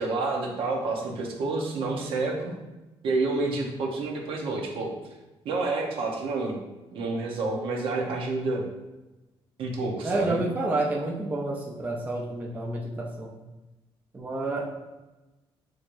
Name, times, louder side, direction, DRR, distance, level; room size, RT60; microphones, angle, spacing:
voice 1, 0.0-2.5 3.0-4.9 5.4-6.6 6.9-8.6 9.6-10.4, right 3 dB, 65° right, 0 dB, 0.9 m, -29 dB
voice 2, 10.0-13.3 14.1-14.7, right 2 dB, 15° right, -2 dB, 0.5 m, -29 dB
6.2 x 3.0 x 2.6 m, 1.1 s
cardioid pair, 165°, 10 cm